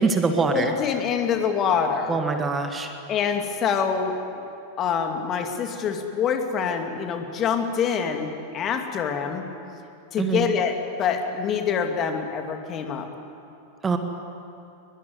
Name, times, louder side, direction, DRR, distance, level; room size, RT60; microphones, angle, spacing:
voice 1, 0.0-0.7 2.1-2.9 10.2-10.5 13.8-14.0, right 4 dB, 15° right, 6 dB, 2.0 m, -23 dB
voice 2, 0.5-2.2 3.1-4.4 4.8-9.4 10.1-13.1, left 6 dB, 30° left, 5 dB, 2.5 m, -25 dB
23.0 x 22.5 x 9.5 m, 2.6 s
figure-of-eight pair, 90°, 0 cm